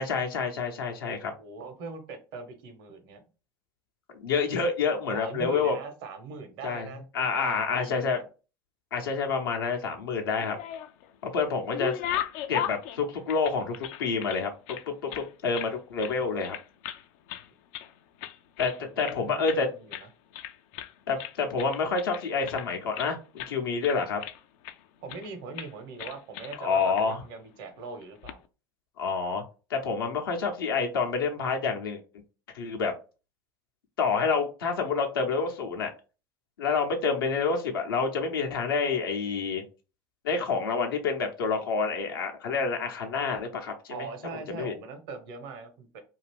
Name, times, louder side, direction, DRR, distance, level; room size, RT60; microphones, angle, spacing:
voice 1, 0.0-1.3 4.1-5.7 6.6-6.9 7.1-8.2 8.9-10.6 11.2-12.0 12.5-14.8 15.0-16.5 18.6-19.7 21.1-24.2 26.6-27.2 29.0-29.4 29.7-32.0 32.5-32.9 34.0-35.9 36.6-39.6 40.2-44.1 44.5-44.7, left 5 dB, 85° left, 3 dB, 0.8 m, -28 dB
voice 2, 1.4-3.2 5.1-8.2 18.8-20.1 25.0-28.4 43.9-46.0, right 4 dB, 75° right, 6 dB, 1.0 m, -41 dB
sound 1, 10.3-11.1 11.5-14.4 14.7-15.7 16.0-16.2 16.4-17.0 17.3-17.9 18.2-19.2 19.5-19.6 19.9-20.1 20.3-20.9 21.2-23.1 23.4-23.6 23.8-24.8 25.1-25.3 25.6-25.7 26.0-26.6 27.0-27.1 28.0-28.4, left 11 dB, 65° left, 0.4 m, -37 dB
2.7 x 2.5 x 3.3 m, 0.33 s
hypercardioid pair, 75°, 12 cm